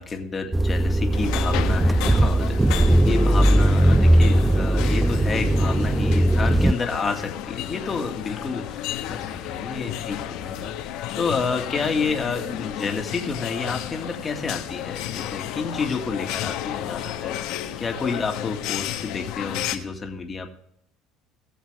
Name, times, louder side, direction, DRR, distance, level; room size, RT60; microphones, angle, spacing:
voice 1, 0.0-10.7 11.1-20.5, left 4 dB, 25° left, 3 dB, 1.9 m, -30 dB
sound 1, 0.5-6.7, right 1 dB, 10° right, 0.3 m, -19 dB
sound 2, 1.1-19.8, left 12 dB, 75° left, 1.2 m, -32 dB
sound 3, 7.6-17.7, left 8 dB, 40° left, 1.6 m, -49 dB
19.5 x 7.3 x 3.3 m, 0.76 s
cardioid pair, 130°, 0 cm